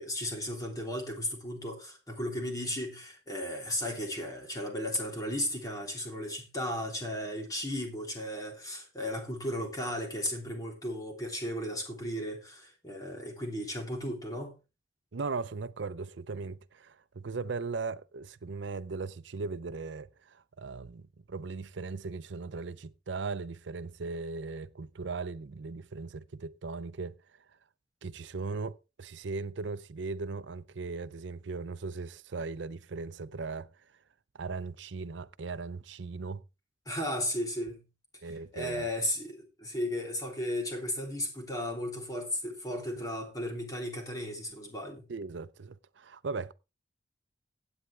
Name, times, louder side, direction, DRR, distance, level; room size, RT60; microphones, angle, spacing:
voice 1, 0.0-14.5 36.8-37.8 38.5-45.1, left 1 dB, 20° left, 3.2 m, -35 dB
voice 2, 15.1-21.0 21.3-27.2 28.0-33.7 34.3-36.4 38.2-38.9 45.1-46.5, right 4 dB, 80° right, 0.6 m, -38 dB
16.0 x 8.9 x 3.3 m
head